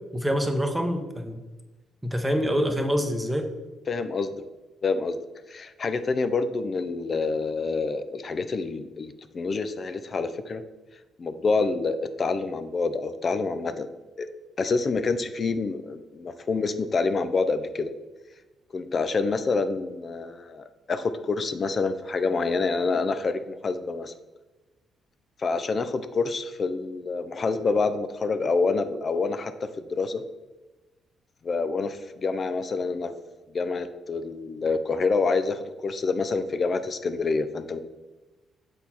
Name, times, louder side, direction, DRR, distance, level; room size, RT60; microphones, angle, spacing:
voice 1, 0.1-1.4 2.0-3.5, equal, 10° right, 5 dB, 0.8 m, -26 dB
voice 2, 3.9-4.3 4.8-5.2 5.5-10.6 11.2-13.9 14.2-14.3 14.6-17.9 18.7-24.1 25.4-29.5 29.9-30.2 31.4-33.1 33.5-37.8, left 4 dB, 40° left, 11 dB, 0.5 m, -27 dB
6.8 x 4.2 x 4.3 m, 1.1 s
cardioid pair, 90°, 0 cm